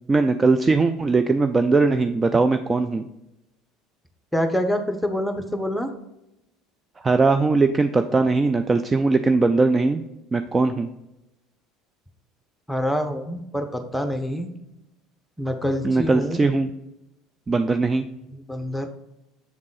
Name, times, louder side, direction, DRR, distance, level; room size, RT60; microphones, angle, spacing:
voice 1, 0.1-3.0 7.0-10.0 10.3-10.9 15.8-16.7 17.5-18.0, right 3 dB, 25° right, 8 dB, 0.4 m, -20 dB
voice 2, 4.3-5.9 12.7-14.5 15.4-16.4 18.3-18.9, equal, ahead, 6 dB, 0.9 m, -26 dB
7.2 x 3.6 x 3.9 m, 0.88 s
hypercardioid pair, 70°, 0 cm